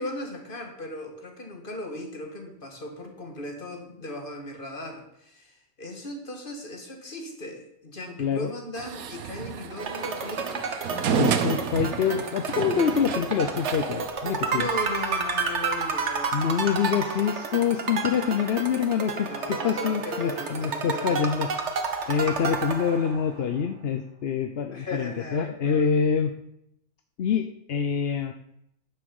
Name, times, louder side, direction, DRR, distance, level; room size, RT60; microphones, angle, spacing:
voice 1, 0.0-10.7 14.5-16.3 19.3-21.4 24.7-25.9, left 1 dB, 40° left, 3 dB, 2.0 m, -37 dB
voice 2, 8.2-8.5 11.1-14.7 16.3-21.5 22.1-26.3 27.2-28.3, left 7 dB, 55° left, 7 dB, 0.8 m, -26 dB
sound 1, 8.8-14.1, right 7 dB, 85° right, 1.3 m, -31 dB
sound 2, 9.8-23.4, right 5 dB, 55° right, 1.4 m, -31 dB
9.9 x 7.0 x 7.0 m, 0.77 s
omnidirectional pair, 1.5 m